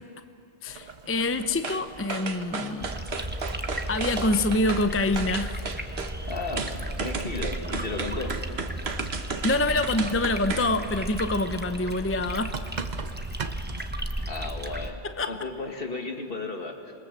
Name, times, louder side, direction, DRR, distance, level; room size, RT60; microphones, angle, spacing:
voice 1, 0.6-2.9 3.6-5.6 9.3-12.6 15.0-15.5, left 2 dB, 15° left, 9 dB, 0.6 m, -26 dB
Boiling, 0.7-13.9, right 5 dB, 40° right, 0.9 m, -44 dB
sound 1, 1.6-1.8 2.1-4.9 5.2-6.1 6.6-10.7 11.1-11.2, right 4 dB, 60° right, 1.5 m, -34 dB
sound 2, 2.8-14.9, right 1 dB, 10° right, 1.1 m, -35 dB
voice 2, 6.3-6.7 7.0-8.4 14.3-15.0 15.3-16.9, left 3 dB, 50° left, 4 dB, 2.2 m, -34 dB
26.5 x 21.5 x 7.4 m, 2.7 s
omnidirectional pair, 1.2 m